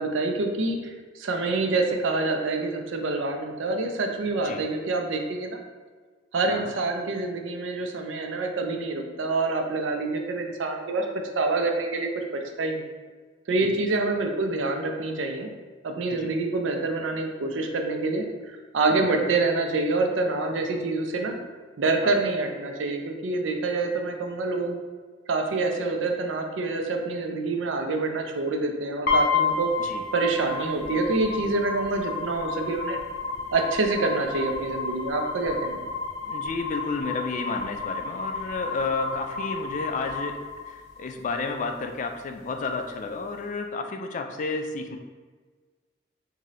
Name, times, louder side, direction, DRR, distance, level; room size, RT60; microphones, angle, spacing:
voice 1, 0.0-5.6 6.3-11.1 11.4-12.8 13.5-15.5 15.8-21.4 21.8-24.8 25.3-29.7 30.1-33.0 33.5-35.8, right 3 dB, 80° right, 4 dB, 0.5 m, -26 dB
sound 1, 29.1-41.1, left 4 dB, 60° left, 0.7 m, -31 dB
voice 2, 36.2-40.4 40.7-45.0, left 3 dB, 40° left, 5 dB, 0.3 m, -31 dB
3.1 x 2.7 x 3.8 m, 1.5 s
head